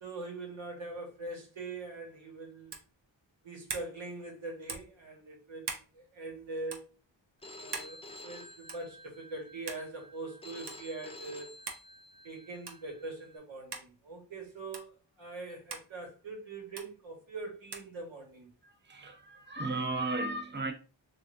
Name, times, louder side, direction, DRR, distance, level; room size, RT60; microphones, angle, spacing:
voice 1, 0.0-2.7 3.4-6.9 7.6-11.5 12.2-18.5, right 2 dB, 75° right, 1.3 m, -43 dB
sound 1, 2.7-2.9 3.7-3.9 4.7-4.9 5.6-5.9 6.7-6.8 7.7-7.9 8.7-8.9 9.7-9.9 10.7-10.8 11.7-11.9 12.6-12.9 13.7-13.9 14.7-14.9 15.7-15.9 16.8-16.9 17.7-17.9, right 4 dB, 60° right, 0.8 m, -41 dB
Telephone, 7.4-13.4, left 1 dB, 15° left, 0.3 m, -51 dB
voice 2, 18.9-20.7, right 2 dB, 25° right, 0.7 m, -34 dB
3.3 x 2.5 x 2.5 m
cardioid pair, 60°, 46 cm